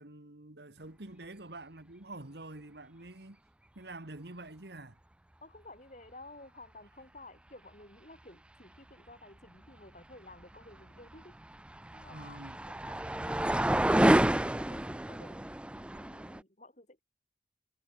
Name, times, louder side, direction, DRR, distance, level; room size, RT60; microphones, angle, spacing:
voice 1, 0.0-3.4 3.8-5.0 12.1-12.6, right 2 dB, 70° right, 2.1 m, -47 dB
voice 2, 5.4-11.4 11.9-17.0, left 2 dB, 40° left, 7.9 m, -54 dB
sound 1, 11.1-16.4, right 1 dB, 5° right, 0.4 m, -29 dB
head